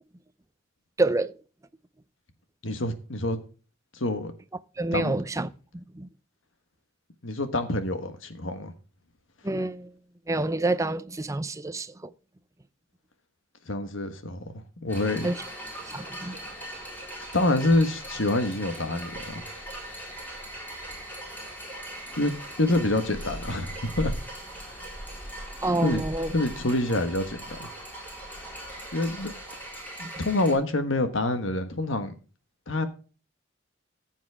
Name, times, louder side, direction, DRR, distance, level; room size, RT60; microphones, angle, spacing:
voice 1, 1.0-1.3 4.8-5.5 5.9-6.1 9.4-9.9 10.3-12.1 15.2-15.4 15.9-16.4 25.6-26.3, right 2 dB, 15° right, 0.5 m, -27 dB
voice 2, 2.6-3.4 3.9-4.3 4.9-5.1 7.2-8.7 13.7-14.4 14.8-15.3 17.3-19.4 22.2-24.1 24.7-24.8 25.8-26.0 26.3-27.7 28.9-29.3 30.0-32.1 32.7-32.9, left 2 dB, 65° left, 1.4 m, -27 dB
sound 1, 14.9-30.5, right 1 dB, 10° left, 3.9 m, -39 dB
14.5 x 7.3 x 3.5 m
head